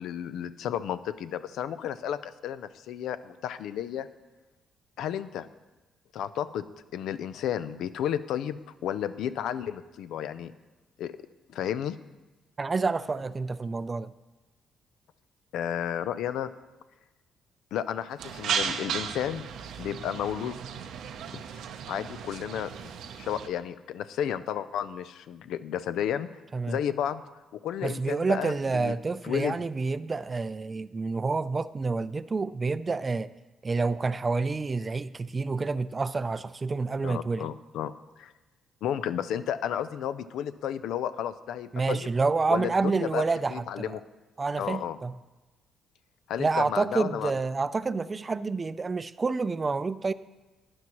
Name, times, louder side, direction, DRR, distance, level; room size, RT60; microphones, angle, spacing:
voice 1, 0.0-4.1 5.0-5.5 6.1-6.7 6.9-10.5 11.0-11.1 11.5-12.0 15.5-16.5 17.7-19.4 19.8-20.6 21.3-21.4 21.9-26.3 26.7-27.2 27.5-28.9 29.2-29.7 37.0-38.3 38.8-42.1 42.5-43.2 43.5-44.0 44.6-45.0 46.3-47.3, left 9 dB, 80° left, 13 dB, 0.4 m, -32 dB
voice 2, 12.6-14.1 26.5-26.8 27.8-33.3 33.6-37.5 41.7-43.9 44.4-45.1 46.4-50.1, right 4 dB, 30° right, 14 dB, 0.3 m, -28 dB
sound 1, 18.2-23.5, right 7 dB, 80° right, 0.6 m, -35 dB
12.0 x 9.6 x 3.0 m, 1.1 s
cardioid pair, 80°, 0 cm